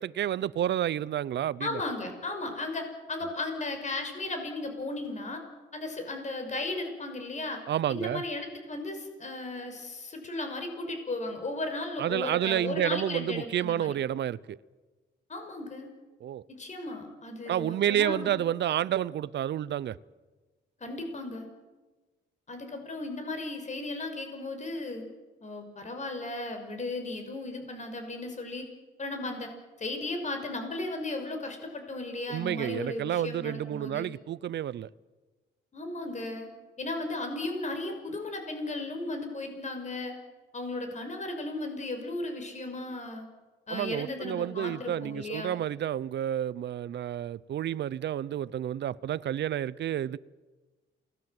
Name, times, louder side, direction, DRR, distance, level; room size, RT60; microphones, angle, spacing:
voice 1, 0.0-1.8 7.7-8.2 12.0-14.6 16.2-16.4 17.5-20.0 32.3-34.9 43.7-50.2, right 11 dB, 60° right, 0.8 m, -30 dB
voice 2, 1.6-5.4 5.7-7.6 7.9-13.9 15.3-15.9 16.5-18.4 20.8-21.5 22.5-25.0 25.4-28.7 29.0-29.5 29.8-34.1 35.7-36.5 36.8-40.2 40.5-43.2 43.7-45.6, left 2 dB, 35° left, 5.9 m, -35 dB
28.0 x 20.0 x 7.9 m
cardioid pair, 90°, 20 cm